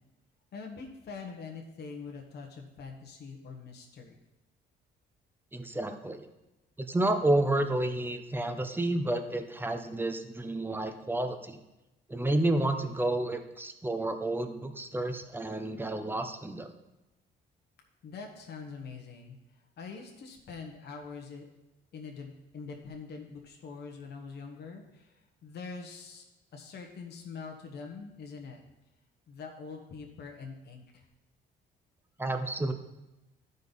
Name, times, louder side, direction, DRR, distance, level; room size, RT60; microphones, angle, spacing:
voice 1, 0.5-4.1 18.0-19.3 19.8-21.5 21.9-25.1 25.4-26.2 26.5-28.6 29.3-31.0, left 5 dB, 60° left, 1 dB, 1.2 m, -44 dB
voice 2, 5.5-6.3 6.8-11.6 12.1-16.7 32.2-32.7, right 1 dB, 10° right, 7 dB, 0.9 m, -30 dB
12.5 x 5.3 x 4.1 m, 0.98 s
cardioid pair, 85°, 19 cm